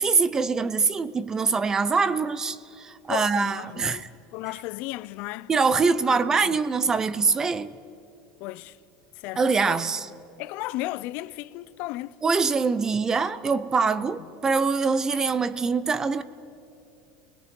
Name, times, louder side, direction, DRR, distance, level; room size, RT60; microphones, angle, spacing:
voice 1, 0.0-4.1 5.5-7.7 9.4-10.1 12.2-16.2, right 4 dB, 15° right, 0.6 m, -24 dB
voice 2, 3.1-5.5 6.1-6.6 8.4-8.8 9.2-9.8 10.4-12.2 14.0-14.1, left 17 dB, 50° left, 0.5 m, -35 dB
29.5 x 20.5 x 5.3 m
cardioid pair, 165°, 4 cm